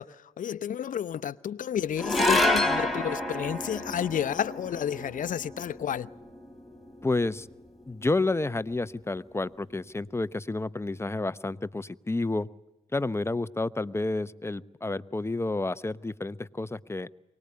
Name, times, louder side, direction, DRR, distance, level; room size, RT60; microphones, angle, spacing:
voice 1, 0.0-6.1, left 9 dB, 55° left, 0.8 m, -31 dB
sound 1, 2.0-8.5, left 1 dB, ahead, 3.5 m, -30 dB
voice 2, 7.0-7.5 7.9-12.5 12.9-17.3, left 2 dB, 15° left, 0.8 m, -30 dB
23.5 x 19.0 x 9.5 m
supercardioid pair, 50°, 16 cm